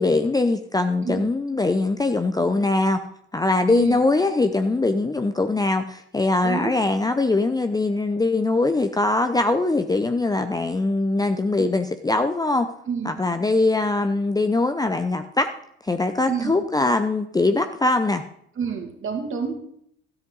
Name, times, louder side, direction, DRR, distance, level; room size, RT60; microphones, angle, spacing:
voice 1, 0.0-3.0 3.3-12.7 13.0-15.5 15.8-18.2, left 2 dB, 15° left, 8 dB, 0.7 m, -22 dB
voice 2, 3.7-4.0 6.4-6.7 11.6-11.7 12.9-13.1 16.3-16.5 18.6-19.5, right 6 dB, 40° right, 4 dB, 2.2 m, -28 dB
13.0 x 8.1 x 4.0 m, 0.70 s
hypercardioid pair, 60°, 30 cm